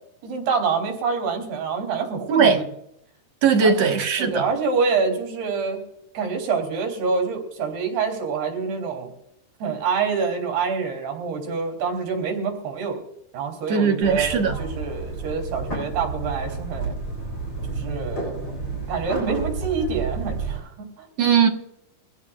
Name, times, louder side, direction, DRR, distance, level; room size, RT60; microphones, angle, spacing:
voice 1, 0.2-2.7 3.6-3.9 4.2-5.8 6.1-9.1 9.6-13.0 13.3-17.0 17.7-18.3 18.9-21.1, right 5 dB, 75° right, 5.3 m, -26 dB
voice 2, 3.4-4.5 13.7-14.6 21.2-21.5, right 6 dB, 55° right, 2.1 m, -19 dB
sound 1, 14.0-20.6, right 3 dB, 25° left, 8.2 m, -31 dB
23.5 x 15.5 x 2.4 m
omnidirectional pair, 4.7 m